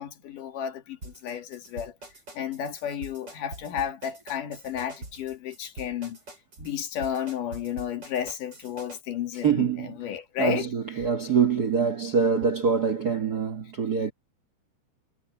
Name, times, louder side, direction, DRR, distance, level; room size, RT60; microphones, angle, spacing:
voice 1, 0.0-1.9 2.3-6.2 6.6-10.7 11.0-11.1, left 9 dB, 80° left, 3.5 m, -32 dB
sound 1, 1.0-9.0, right 2 dB, 30° right, 5.9 m, -44 dB
voice 2, 9.4-9.9 10.4-14.1, right 6 dB, 50° right, 1.1 m, -24 dB
omnidirectional pair, 3.7 m